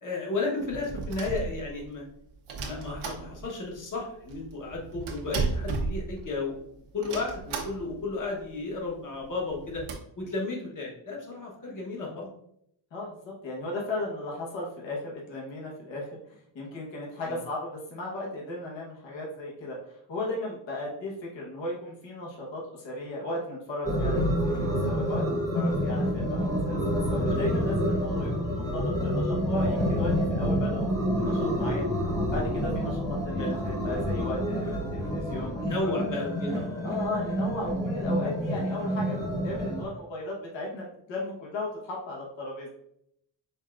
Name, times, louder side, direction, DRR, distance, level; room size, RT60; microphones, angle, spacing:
voice 1, 0.0-2.0 2.6-6.6 6.9-9.8 10.2-12.3 17.2-17.4 27.3-27.4 33.4-33.6 35.6-36.8, left 3 dB, 40° left, -2 dB, 1.3 m, -33 dB
sound 1, 0.6-2.0 2.5-3.7 4.0-4.1 4.3-6.6 7.0-8.1 8.4-8.5 8.7-8.9 9.4-9.9, right 4 dB, 90° right, 1.0 m, -34 dB
voice 2, 12.9-24.2 24.5-31.9 32.3-35.9 36.8-42.7, left 2 dB, 65° left, -3 dB, 1.3 m, -36 dB
sound 2, 23.8-39.9, equal, 5° left, 1.0 m, -28 dB
5.3 x 3.7 x 2.5 m, 0.74 s
wide cardioid pair, 145°, 47 cm